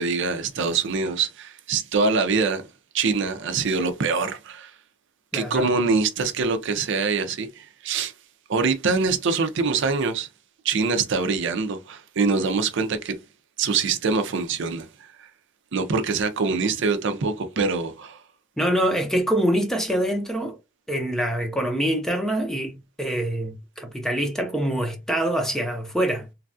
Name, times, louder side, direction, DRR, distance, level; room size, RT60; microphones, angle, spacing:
voice 1, 0.0-2.6 2.9-4.7 5.3-8.1 8.5-10.3 10.6-13.2 13.6-15.3 15.7-18.2, right 4 dB, 65° right, 0.5 m, -24 dB
voice 2, 5.3-5.7 18.6-20.6 20.9-26.2, right 1 dB, ahead, 0.6 m, -25 dB
3.1 x 2.3 x 2.5 m
head